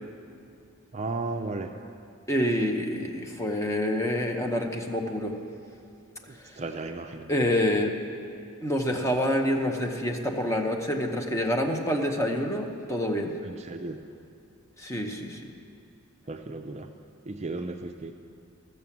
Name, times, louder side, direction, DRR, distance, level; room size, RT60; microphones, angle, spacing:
voice 1, 0.9-1.7 6.6-7.3 13.5-14.0 16.3-16.9 17.3-18.1, right 3 dB, 30° right, 5 dB, 0.4 m, -34 dB
voice 2, 2.3-5.4 6.4-6.6 7.3-7.9 8.6-13.3 14.8-15.5, left 1 dB, 15° left, 2 dB, 0.8 m, -27 dB
14.0 x 6.8 x 7.2 m, 2.6 s
head